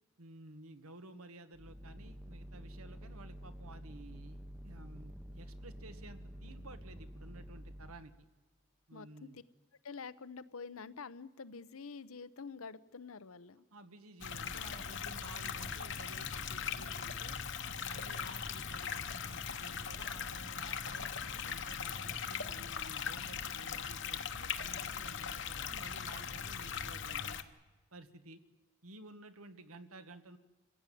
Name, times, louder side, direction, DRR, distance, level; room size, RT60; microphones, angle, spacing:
voice 1, 0.2-4.4 4.6-8.1 8.9-9.4 13.7-17.4 17.8-27.4 27.9-28.4 28.8-30.4, right 2 dB, 85° right, 9 dB, 1.5 m, -53 dB
sound 1, 1.5-8.1, equal, 5° right, 0.8 m, -49 dB
voice 2, 8.9-9.4 9.8-13.6, left 5 dB, 80° left, 14 dB, 0.8 m, -47 dB
sound 2, 14.2-27.4, left 7 dB, 55° left, 1.1 m, -40 dB
27.5 x 16.0 x 9.3 m, 1.2 s
head